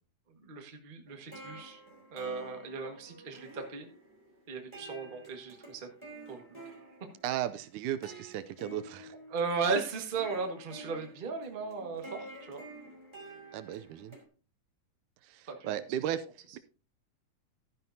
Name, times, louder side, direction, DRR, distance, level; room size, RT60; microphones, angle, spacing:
voice 1, 0.4-1.8 2.1-3.9 4.5-5.9 6.3-6.5 9.3-12.6 15.5-15.7, right 4 dB, 30° right, 3 dB, 0.9 m, -36 dB
sound 1, 1.1-14.2, right 1 dB, 10° right, 3.1 m, -50 dB
voice 2, 7.2-9.1 13.5-14.2 15.2-16.3 16.5-16.6, right 11 dB, 80° right, 12 dB, 2.0 m, -35 dB
13.0 x 10.0 x 2.7 m, 0.35 s
omnidirectional pair, 3.6 m